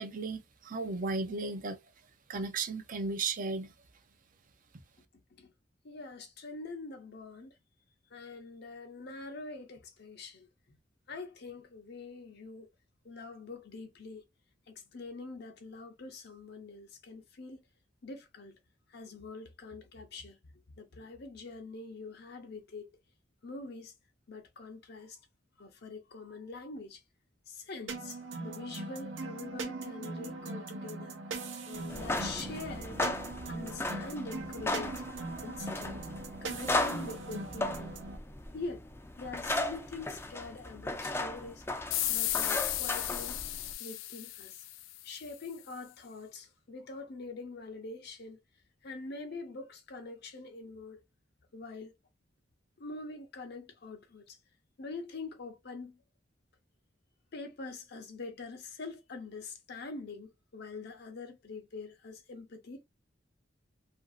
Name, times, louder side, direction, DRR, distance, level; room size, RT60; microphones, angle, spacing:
voice 1, 0.0-1.8 2.3-3.7, right 3 dB, 45° right, 0.5 m, -35 dB
voice 2, 5.8-7.6 8.1-10.8 11.1-12.7 13.0-14.2 14.7-17.6 18.0-18.6 18.9-22.9 23.4-23.9 24.3-25.2 25.6-27.0 27.5-33.0 33.5-35.0 35.4-36.0 36.4-37.9 38.5-38.9 39.2-41.6 42.1-43.4 43.8-44.7 45.0-48.4 48.8-51.0 51.5-51.9 52.8-54.4 54.8-56.0 57.3-62.9, left 3 dB, 60° left, 0.7 m, -44 dB
sound 1, 27.9-38.2, right 3 dB, 85° right, 0.7 m, -40 dB
sound 2, 31.8-43.7, left 2 dB, 15° left, 0.4 m, -36 dB
sound 3, 41.9-45.2, left 15 dB, 90° left, 0.3 m, -34 dB
2.9 x 2.5 x 2.4 m
head